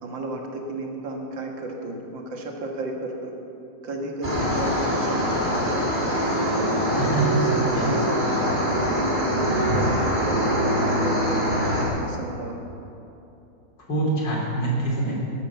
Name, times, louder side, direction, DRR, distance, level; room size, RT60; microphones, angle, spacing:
voice 1, 0.0-3.3 3.8-5.8 6.6-11.6 12.0-12.6 15.1-15.2, right 2 dB, 85° right, 1 dB, 2.4 m, -33 dB
sound 1, 4.2-11.8, equal, 25° right, 3.1 m, -23 dB
voice 2, 7.0-8.0 13.9-15.1, right 2 dB, 75° left, -3 dB, 4.0 m, -25 dB
12.5 x 12.0 x 7.1 m, 2.8 s
omnidirectional pair, 2.0 m